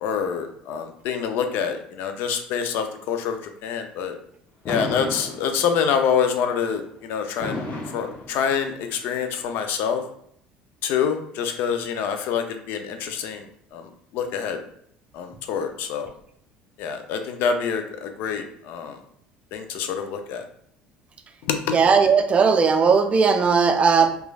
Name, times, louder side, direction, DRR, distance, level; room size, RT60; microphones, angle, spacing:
voice 1, 0.0-3.4 3.6-4.1 4.7-7.6 7.9-10.0 10.8-13.4 13.7-13.8 14.1-14.6 15.1-16.1 16.8-19.0 19.5-20.4 21.5-21.6, left 7 dB, 70° left, 7 dB, 0.4 m, -26 dB
Fireworks, 4.6-6.0 7.4-8.9, left 2 dB, 45° left, 0.8 m, -32 dB
voice 2, 21.7-24.3, right 5 dB, 35° right, 6 dB, 0.4 m, -18 dB
3.1 x 2.2 x 2.3 m, 0.67 s
supercardioid pair, 85°, 4 cm